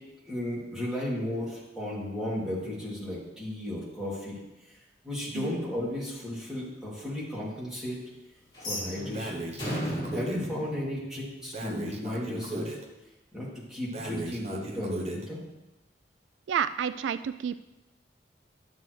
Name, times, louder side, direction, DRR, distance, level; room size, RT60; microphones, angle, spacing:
voice 1, 0.3-4.4 5.0-8.0 8.6-9.4 10.1-12.8 13.3-15.4, left 1 dB, 5° right, -8 dB, 2.6 m, -34 dB
sound 1, 8.5-11.6, equal, 25° left, 3.3 m, -36 dB
Breathing, 9.1-10.5 11.5-12.8 13.9-15.3, right 2 dB, 35° right, 0.9 m, -37 dB
voice 2, 16.5-17.6, right 8 dB, 80° right, 14 dB, 0.3 m, -30 dB
11.5 x 7.6 x 3.2 m, 1.0 s
head